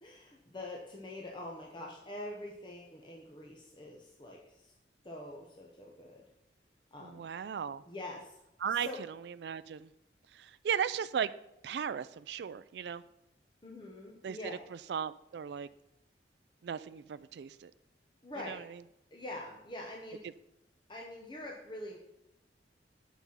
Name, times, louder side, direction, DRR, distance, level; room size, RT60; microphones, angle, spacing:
voice 1, 0.0-4.7 5.0-6.2 6.9-7.2 7.8-8.4 8.7-9.0 13.6-14.6 18.2-18.6 19.1-20.2 20.9-22.0, left 1 dB, 25° left, -1 dB, 1.1 m, -45 dB
voice 2, 7.0-7.8 8.6-9.9 10.3-11.3 11.6-13.0 14.2-14.4 14.7-15.7 16.6-17.7 18.5-18.8, right 7 dB, 70° right, 14 dB, 0.3 m, -36 dB
9.1 x 6.1 x 5.5 m, 0.84 s
head